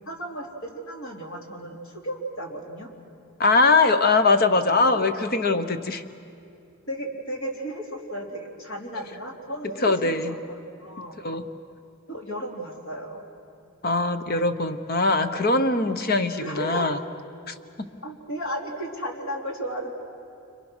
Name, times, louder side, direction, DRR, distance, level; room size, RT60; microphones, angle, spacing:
voice 1, 0.1-2.9 4.9-5.1 6.9-11.2 12.1-13.2 16.4-16.9 18.0-19.9, right 1 dB, 70° left, 0 dB, 3.6 m, -34 dB
voice 2, 3.4-6.0 9.8-10.4 11.2-11.5 13.8-17.0 17.5-17.6, left 3 dB, 45° left, 9 dB, 1.1 m, -21 dB
29.5 x 27.0 x 6.3 m, 2.6 s
head